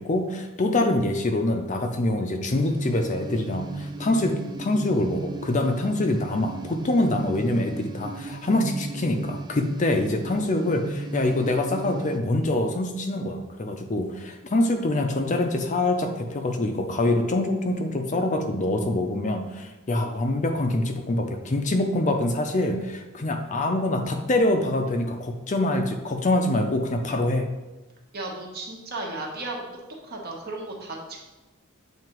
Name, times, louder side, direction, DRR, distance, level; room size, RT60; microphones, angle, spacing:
voice 1, 0.0-27.5, left 1 dB, 35° left, 5 dB, 0.5 m, -25 dB
sound 1, 2.6-12.2, right 2 dB, 20° right, 0.3 m, -36 dB
voice 2, 28.1-29.7 30.0-31.2, right 2 dB, 50° right, -1 dB, 1.1 m, -34 dB
7.4 x 2.9 x 4.5 m, 1.1 s
head